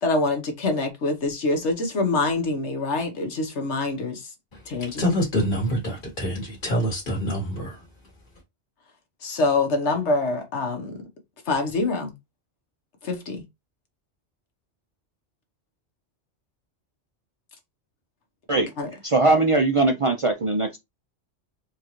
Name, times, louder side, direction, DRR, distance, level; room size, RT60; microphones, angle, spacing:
voice 1, 0.0-4.3 4.7-5.0 9.2-11.0 11.5-12.1 13.0-13.4 18.8-18.9, left 3 dB, 80° left, 1.4 m, -25 dB
voice 2, 4.5-7.8, equal, 50° left, 1.8 m, -26 dB
voice 3, 19.0-20.8, right 2 dB, 55° right, 0.3 m, -20 dB
4.4 x 2.4 x 2.9 m
omnidirectional pair, 1.2 m